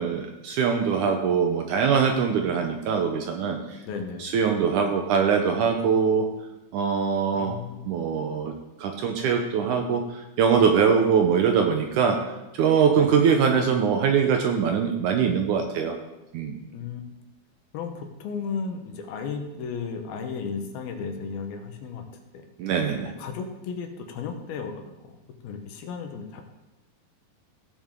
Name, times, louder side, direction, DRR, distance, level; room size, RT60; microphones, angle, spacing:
voice 1, 0.0-3.8 4.2-6.3 6.7-7.5 7.9-8.5 8.8-15.9 16.3-16.6 22.6-23.1, right 6 dB, 75° right, 4 dB, 1.9 m, -23 dB
voice 2, 3.8-4.3 7.3-7.8 12.9-13.2 16.7-17.0 17.7-22.0 22.3-22.4 23.1-25.2 25.4-26.4, left 5 dB, 85° left, 5 dB, 3.0 m, -34 dB
16.5 x 7.2 x 3.7 m, 0.97 s
omnidirectional pair, 4.2 m